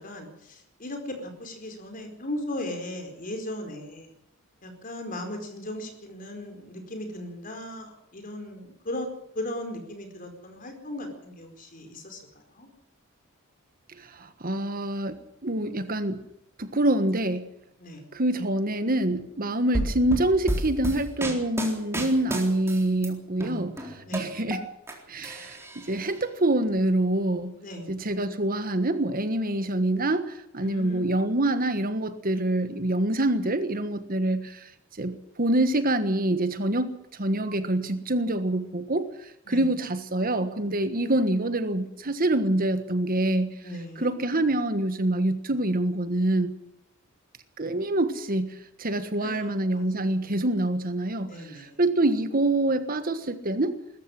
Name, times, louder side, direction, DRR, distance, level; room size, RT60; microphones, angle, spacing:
voice 1, 0.0-4.1 4.6-9.1 9.3-12.7 17.8-18.0 24.0-24.3 27.6-27.9 30.6-31.1 39.5-39.7 40.9-41.1 43.6-44.1 49.2-50.3 51.2-51.8, left 1 dB, 40° left, 5 dB, 4.7 m, -37 dB
voice 2, 14.0-16.2 16.6-17.5 18.1-24.7 25.1-27.6 27.9-34.7 35.0-36.9 37.2-43.6 44.0-46.5 47.6-53.8, right 1 dB, 45° right, 11 dB, 1.5 m, -26 dB
sound 1, 19.7-23.1 23.4-24.9 25.2-26.1, right 1 dB, 10° right, 4.0 m, -31 dB
21.0 x 14.0 x 9.8 m, 0.79 s
head